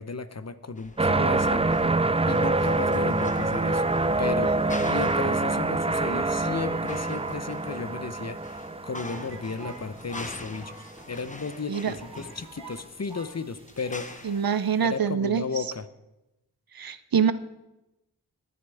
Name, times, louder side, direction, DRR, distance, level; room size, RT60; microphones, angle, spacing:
voice 1, 0.0-1.7 2.3-3.8 4.2-4.5 4.8-14.1 14.8-15.9, left 4 dB, 40° left, 12 dB, 0.8 m, -34 dB
sound 1, 0.8-14.4, left 2 dB, 20° left, 1.0 m, -45 dB
sound 2, 1.0-10.1 10.7-10.8, right 2 dB, 15° right, 0.5 m, -26 dB
sound 3, 3.1-5.4 5.7-5.8 6.1-6.9 7.2-8.1 8.7-8.8 9.0-11.3 11.6-11.7 12.0-12.8 13.1-13.3, right 4 dB, 85° right, 1.6 m, -47 dB
voice 2, 14.2-15.6 16.7-17.3, right 7 dB, 60° right, 13 dB, 0.7 m, -25 dB
18.5 x 9.8 x 3.5 m, 0.95 s
cardioid pair, 40°, 40 cm